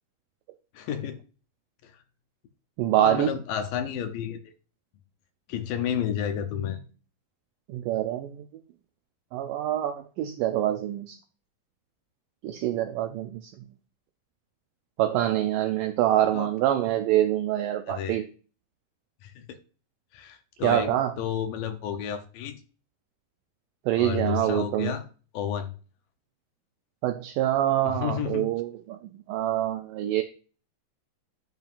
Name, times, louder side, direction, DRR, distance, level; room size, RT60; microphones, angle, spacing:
voice 1, 0.7-1.2 1.8-2.0 3.0-4.4 5.5-6.8 15.6-15.7 16.3-16.5 17.9-18.2 19.2-19.6 20.1-22.6 23.9-25.0 25.3-25.7 27.8-28.5, left 9 dB, 75° left, 6 dB, 2.3 m, -31 dB
voice 2, 2.8-3.3 7.7-8.5 9.3-11.2 12.4-13.5 15.0-18.3 20.6-21.1 23.9-24.9 27.0-29.0 29.3-30.2, right 12 dB, 85° right, 6 dB, 1.9 m, -25 dB
10.5 x 7.7 x 2.5 m, 0.37 s
omnidirectional pair, 4.4 m